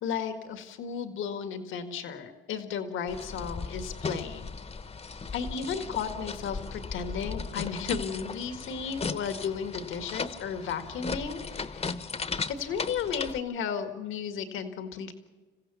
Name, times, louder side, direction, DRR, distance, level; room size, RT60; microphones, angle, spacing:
voice 1, 0.0-4.4 5.3-11.9 12.5-15.1, left 6 dB, 85° left, 8 dB, 1.9 m, -34 dB
sound 1, 3.1-13.4, left 4 dB, 30° left, 1.0 m, -37 dB
28.5 x 15.5 x 7.1 m, 1.3 s
cardioid pair, 90°, 20 cm